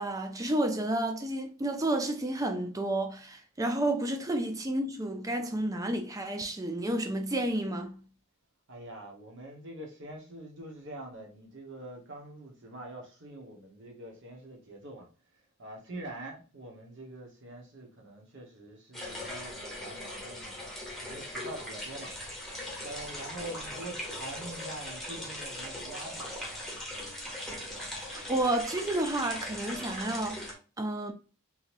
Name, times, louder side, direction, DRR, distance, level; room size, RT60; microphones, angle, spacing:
voice 1, 0.0-8.0 28.1-30.4 30.8-31.1, right 1 dB, 15° right, 0.4 m, -31 dB
voice 2, 8.7-15.1 15.6-20.7 21.0-22.1 22.8-26.3, right 1 dB, 55° right, 1.1 m, -44 dB
sound 1, 18.9-30.5, left 1 dB, ahead, 1.0 m, -40 dB
3.8 x 2.9 x 2.5 m
head